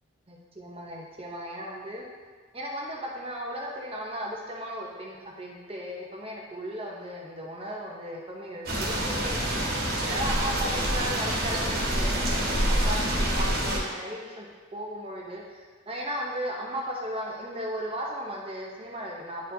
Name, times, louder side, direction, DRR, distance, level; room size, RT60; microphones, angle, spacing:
voice 1, 0.3-2.0 2.5-9.4 10.1-19.5, equal, 30° right, -2 dB, 0.8 m, -36 dB
sound 1, 8.7-13.8, right 1 dB, 50° right, 1.5 m, -26 dB
10.5 x 4.5 x 2.7 m, 1.5 s
head